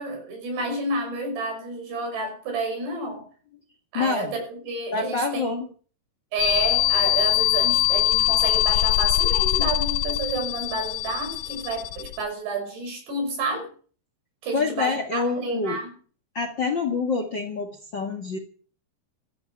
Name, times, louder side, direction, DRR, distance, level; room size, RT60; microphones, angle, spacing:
voice 1, 0.0-3.3 3.9-5.6 6.3-13.7 14.4-15.9, right 2 dB, 70° right, 3 dB, 8.0 m, -30 dB
voice 2, 3.9-4.3 4.9-5.6 14.5-15.8 16.3-18.4, left 4 dB, 50° left, 7 dB, 1.3 m, -26 dB
sound 1, 6.4-12.2, left 14 dB, 70° left, 2.2 m, -22 dB
15.0 x 10.5 x 8.6 m, 0.42 s
omnidirectional pair, 5.0 m